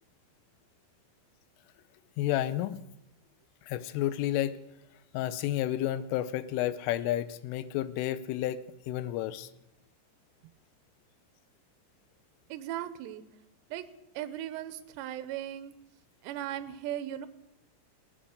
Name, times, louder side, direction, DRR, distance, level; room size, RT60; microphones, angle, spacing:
voice 1, 2.2-2.8 3.6-4.5 5.1-9.5, left 13 dB, 80° left, 15 dB, 3.0 m, -31 dB
voice 2, 12.5-13.2 13.7-13.9 14.1-15.7 16.2-17.3, right 12 dB, 80° right, 12 dB, 2.6 m, -37 dB
18.5 x 8.9 x 6.4 m, 0.89 s
omnidirectional pair, 5.9 m